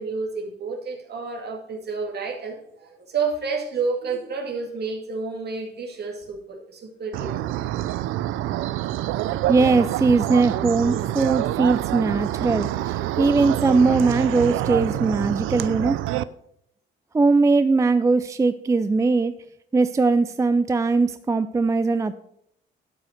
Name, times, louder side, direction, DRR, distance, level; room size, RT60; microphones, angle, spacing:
voice 1, 0.0-7.3, right 4 dB, 55° right, 1 dB, 2.3 m, -30 dB
sound 1, 7.1-16.2, right 14 dB, 90° right, 0.4 m, -26 dB
voice 2, 9.5-16.0 17.1-19.3 19.7-22.2, right 3 dB, 15° right, 12 dB, 0.4 m, -20 dB
12.0 x 5.6 x 5.1 m, 0.74 s
cardioid pair, 90°, 20 cm